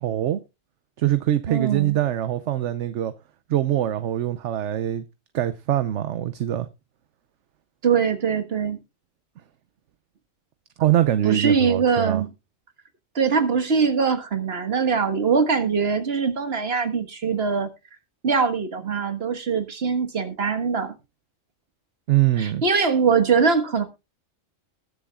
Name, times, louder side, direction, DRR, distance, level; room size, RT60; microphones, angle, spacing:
voice 1, 0.0-0.4 1.0-3.1 3.5-5.0 5.3-6.7 10.8-12.2 22.1-22.6, right 12 dB, 70° right, 1.0 m, -23 dB
voice 2, 1.5-2.0 7.8-8.8 11.2-12.3 13.2-17.7 18.2-21.0 22.4-23.8, right 5 dB, 50° right, 1.7 m, -22 dB
20.5 x 7.1 x 2.3 m
omnidirectional pair, 1.4 m